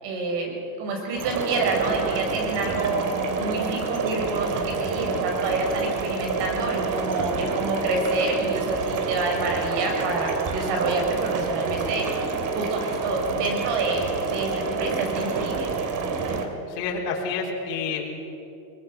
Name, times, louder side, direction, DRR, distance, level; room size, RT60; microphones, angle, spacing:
voice 1, 0.0-3.1 3.4-12.2 12.5-14.5 14.8-15.7, right 3 dB, 60° right, 2 dB, 6.3 m, -28 dB
sound 1, 1.2-16.4, right 4 dB, 40° right, 2.6 m, -28 dB
voice 2, 16.7-18.1, left 5 dB, 75° left, -2 dB, 4.0 m, -28 dB
23.0 x 20.5 x 6.1 m, 3.0 s
supercardioid pair, 125°, 48 cm